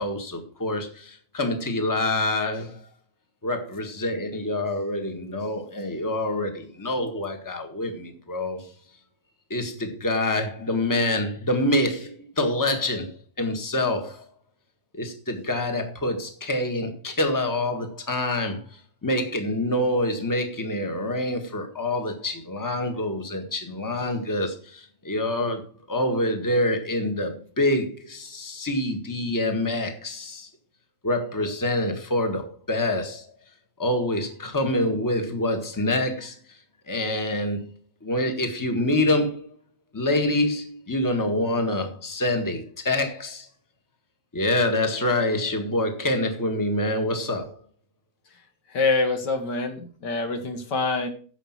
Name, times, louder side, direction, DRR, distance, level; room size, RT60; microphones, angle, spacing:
voice 1, 0.0-2.8 3.4-8.7 9.5-13.1 13.4-14.2 14.9-18.6 19.0-25.6 25.9-30.5 31.0-33.2 33.8-36.3 36.9-37.6 38.0-39.5 39.9-43.5 44.3-47.5, left 1 dB, 10° left, 1.6 m, -26 dB
voice 2, 48.7-51.1, left 3 dB, 75° left, 2.1 m, -25 dB
10.0 x 7.0 x 5.9 m
omnidirectional pair, 1.9 m